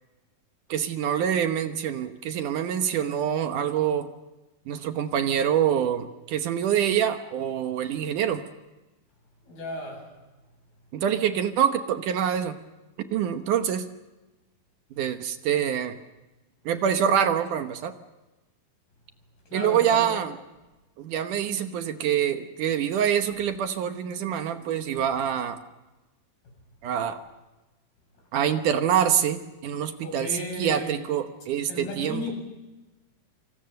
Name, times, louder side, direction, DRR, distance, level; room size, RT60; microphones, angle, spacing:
voice 1, 0.7-4.1 4.7-8.4 10.9-12.6 13.1-13.9 15.0-16.0 16.7-17.9 19.5-20.4 21.0-25.6 26.8-27.2 28.3-32.3, right 9 dB, 65° right, 8 dB, 2.4 m, -25 dB
voice 2, 9.4-10.0 19.5-20.1 30.0-31.0 31.7-32.3, left 2 dB, 85° left, 1 dB, 10.0 m, -34 dB
27.0 x 26.0 x 6.7 m, 1.1 s
omnidirectional pair, 4.2 m